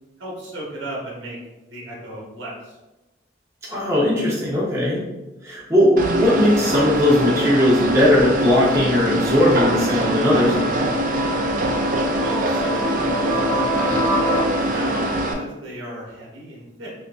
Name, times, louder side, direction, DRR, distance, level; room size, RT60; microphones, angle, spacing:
voice 1, 0.2-1.4 1.7-2.8 12.2-16.9, right 1 dB, 90° right, -3 dB, 0.9 m, -34 dB
voice 2, 3.7-5.0 5.4-10.8, left 1 dB, 15° right, -7 dB, 0.9 m, -18 dB
sound 1, 6.0-15.3, right 1 dB, 45° right, 0.3 m, -23 dB
sound 2, 9.1-14.4, equal, 10° left, 0.5 m, -27 dB
3.6 x 2.7 x 2.5 m, 1.0 s
head